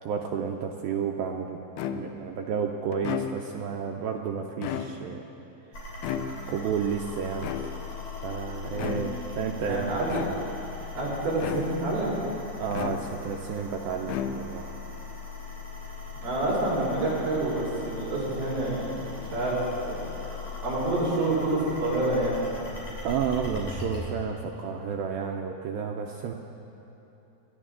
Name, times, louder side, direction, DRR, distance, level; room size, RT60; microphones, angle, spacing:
voice 1, 0.0-1.6 1.9-5.2 6.5-7.8 8.2-10.0 12.6-14.8 23.0-26.3, right 7 dB, 85° right, 2 dB, 2.1 m, -31 dB
sound 1, 1.8-2.3 2.9-3.7 4.5-5.3 6.0-6.7 7.4-8.1 8.7-9.3 10.1-10.7 11.4-12.0 12.7-13.4 14.0-14.8, left 8 dB, 80° left, 2.7 m, -34 dB
sound 2, 5.7-24.0, left 4 dB, 45° left, 4.4 m, -39 dB
voice 2, 9.6-10.2 10.9-12.2 16.1-19.6 19.8-20.1 20.6-22.7, right 2 dB, 65° right, -6 dB, 5.4 m, -28 dB
28.5 x 11.0 x 3.7 m, 3.0 s
omnidirectional pair, 4.9 m